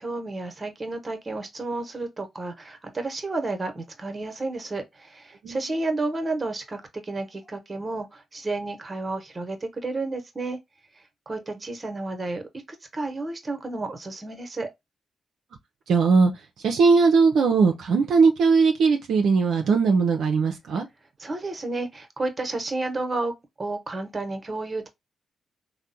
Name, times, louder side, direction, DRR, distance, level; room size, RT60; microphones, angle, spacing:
voice 1, 0.0-10.6 11.3-12.4 12.9-14.7 21.2-24.9, right 2 dB, 35° right, 1.0 m, -31 dB
voice 2, 15.9-16.3 16.6-20.9, right 4 dB, 75° right, 0.4 m, -19 dB
3.3 x 2.1 x 2.6 m
hypercardioid pair, 45°, 0 cm